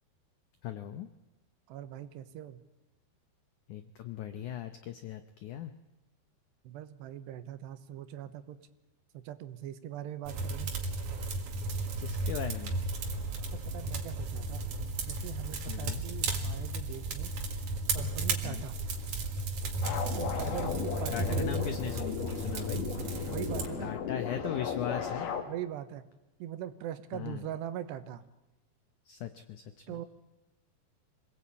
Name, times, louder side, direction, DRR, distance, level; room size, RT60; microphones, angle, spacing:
voice 1, 0.6-1.1 3.7-5.7 12.0-12.7 15.7-16.0 18.4-18.7 20.4-20.8 21.1-22.8 23.8-25.3 27.1-27.5 29.0-30.0, left 10 dB, 90° left, 9 dB, 1.7 m, -39 dB
voice 2, 1.7-2.6 6.6-8.6 9.1-10.7 13.5-14.6 15.1-17.3 17.9-18.8 20.2-21.7 23.3-24.0 24.4-24.5 25.5-26.0 26.4-28.2 29.9-30.1, right 11 dB, 85° right, 11 dB, 3.2 m, -41 dB
sound 1, 10.3-23.7, right 2 dB, 55° right, 2.8 m, -34 dB
sound 2, 19.8-25.4, left 7 dB, 70° left, 3.5 m, -36 dB
26.5 x 18.5 x 8.5 m, 1.0 s
omnidirectional pair, 4.8 m